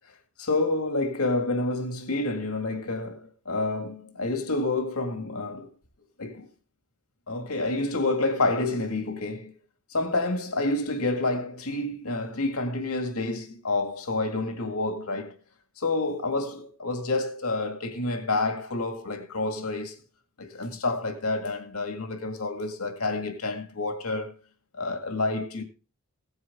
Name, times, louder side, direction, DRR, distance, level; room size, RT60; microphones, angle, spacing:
voice 1, 0.4-5.7 6.2-6.5 7.3-9.5 9.9-15.3 15.8-20.0 20.4-24.3 24.7-25.6, left 2 dB, 75° left, 2.0 m, -28 dB
16.5 x 9.5 x 3.6 m
head